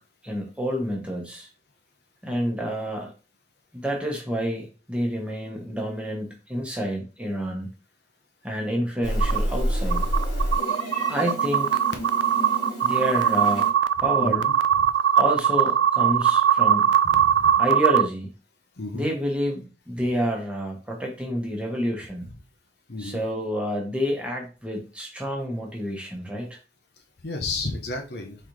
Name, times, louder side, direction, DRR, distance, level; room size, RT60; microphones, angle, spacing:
voice 1, 0.2-1.5 2.2-3.1 3.7-7.7 8.4-10.1 11.1-11.8 12.8-13.7 14.0-14.4 15.2-16.9 17.6-18.3 18.9-22.3 23.0-26.6, equal, 5° right, 0 dB, 1.1 m, -28 dB
Meow, 9.0-13.7, equal, 85° left, 2.1 m, -28 dB
sound 1, 9.2-9.4 9.9-18.1, right 9 dB, 90° right, 0.3 m, -20 dB
voice 2, 14.2-14.9 17.0-17.6 18.8-19.1 22.9-23.2 27.2-28.4, left 3 dB, 60° left, 4 dB, 0.8 m, -33 dB
4.2 x 4.0 x 3.1 m, 0.34 s
head